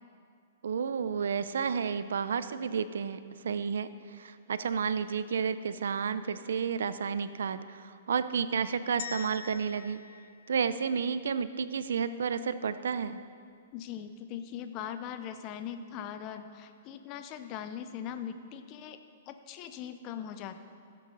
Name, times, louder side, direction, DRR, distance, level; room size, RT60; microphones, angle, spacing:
voice 1, 0.6-10.0 10.5-13.2, right 6 dB, 85° right, 13 dB, 0.4 m, -31 dB
sound 1, 9.0-11.2, left 8 dB, 65° left, 0.9 m, -45 dB
voice 2, 13.7-19.0 19.3-20.6, left 9 dB, 30° left, 9 dB, 0.6 m, -40 dB
15.5 x 8.4 x 3.9 m, 2.3 s
hypercardioid pair, 150°, 0 cm